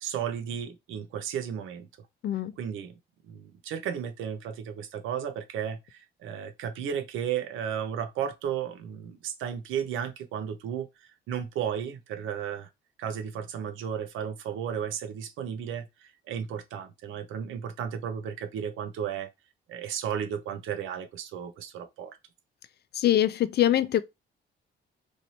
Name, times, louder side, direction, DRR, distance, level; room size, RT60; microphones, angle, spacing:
voice 1, 0.0-1.9 2.6-2.9 3.3-10.9 11.3-12.7 13.0-19.3 19.7-22.2, right 8 dB, 90° right, 0.7 m, -34 dB
voice 2, 22.9-24.0, left 12 dB, 55° left, 0.5 m, -23 dB
3.2 x 2.7 x 2.8 m
cardioid pair, 90°, 20 cm